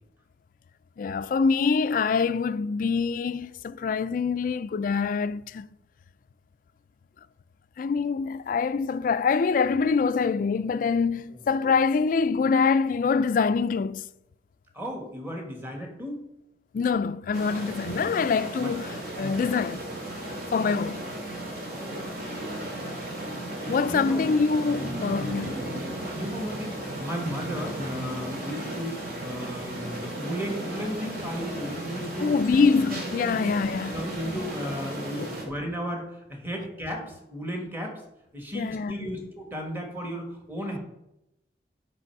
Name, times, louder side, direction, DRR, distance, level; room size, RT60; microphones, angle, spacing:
voice 1, 1.0-5.7 7.8-14.0 16.7-19.8 20.5-21.0 23.7-25.6 32.2-33.9 38.5-39.1, left 5 dB, 50° left, 0.3 m, -25 dB
voice 2, 14.7-16.2 17.5-17.6 18.6-18.7 19.2-19.4 20.6-20.8 21.7-22.0 23.4-24.2 25.1-25.3 26.0-32.4 32.8-32.9 33.3-33.4 33.9-38.0 38.3-40.8, equal, 15° right, 1.6 m, -35 dB
sound 1, 17.3-35.5, right 1 dB, 55° right, 2.2 m, -35 dB
8.4 x 5.5 x 4.6 m
head